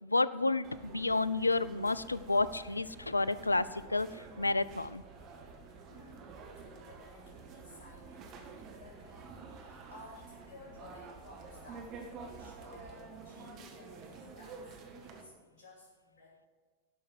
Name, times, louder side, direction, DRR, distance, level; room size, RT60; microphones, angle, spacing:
voice 1, 0.0-5.0, left 3 dB, 80° left, 18 dB, 0.3 m, -30 dB
sound 1, 0.6-15.2, right 4 dB, 35° right, 1.4 m, -50 dB
sound 2, 1.9-12.9, right 3 dB, 55° right, 2.2 m, -59 dB
voice 2, 5.9-6.4 6.7-16.5, left 2 dB, 40° left, -7 dB, 2.8 m, -55 dB
11.5 x 5.5 x 7.8 m, 1.5 s
figure-of-eight pair, 90°, 0 cm